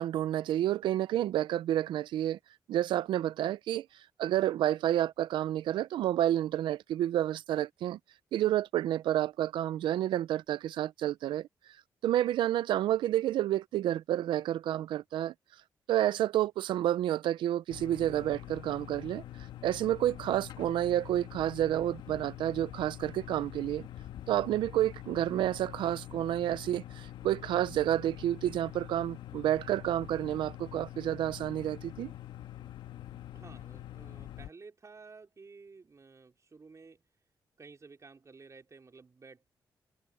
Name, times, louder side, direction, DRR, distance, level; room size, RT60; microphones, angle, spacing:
voice 1, 0.0-2.4 2.7-3.9 4.2-8.0 8.3-11.5 12.0-15.3 15.9-19.2 19.6-23.9 24.3-32.1, right 12 dB, 85° right, 0.6 m, -30 dB
sound 1, 17.7-34.5, left 13 dB, 80° left, 1.7 m, -45 dB
voice 2, 33.3-37.0 37.6-39.4, right 4 dB, 40° right, 4.6 m, -53 dB
supercardioid pair, 60°, 8 cm